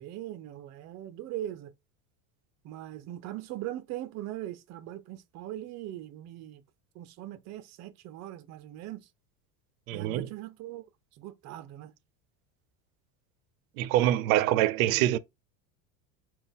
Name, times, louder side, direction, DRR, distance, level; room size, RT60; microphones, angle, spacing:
voice 1, 0.0-1.7 2.6-6.6 6.9-9.1 9.9-10.9 11.1-11.9, right 13 dB, 40° right, 0.6 m, -40 dB
voice 2, 9.9-10.3 13.8-15.2, right 13 dB, 85° right, 0.5 m, -25 dB
3.9 x 2.4 x 3.5 m
supercardioid pair, 130°, 41 cm